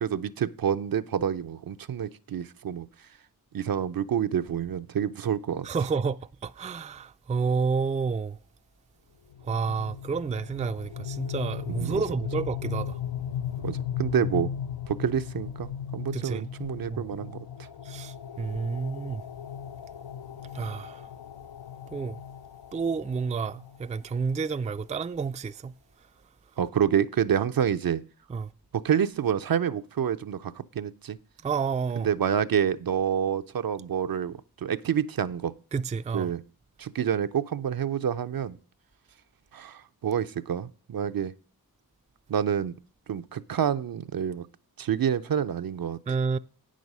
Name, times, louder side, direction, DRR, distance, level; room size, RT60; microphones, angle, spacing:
voice 1, 0.0-2.9 3.5-5.7 11.7-12.0 13.6-14.5 14.9-17.4 26.6-28.0 28.7-31.2 32.0-35.5 36.1-36.4 36.8-38.6 39.5-41.3 42.3-42.8 43.1-44.5 44.8-46.0, right 8 dB, 65° right, 0.6 m, -28 dB
voice 2, 5.6-8.4 9.4-13.0 16.1-16.5 16.9-17.1 17.8-19.2 20.5-21.1 21.9-22.2 22.7-25.7 28.3-28.5 31.4-32.1 35.7-36.3 46.1-46.4, right 5 dB, 20° right, 0.3 m, -30 dB
sound 1, 9.3-24.2, left 8 dB, 85° left, 0.5 m, -37 dB
8.7 x 6.3 x 5.3 m
wide cardioid pair, 80°, 37 cm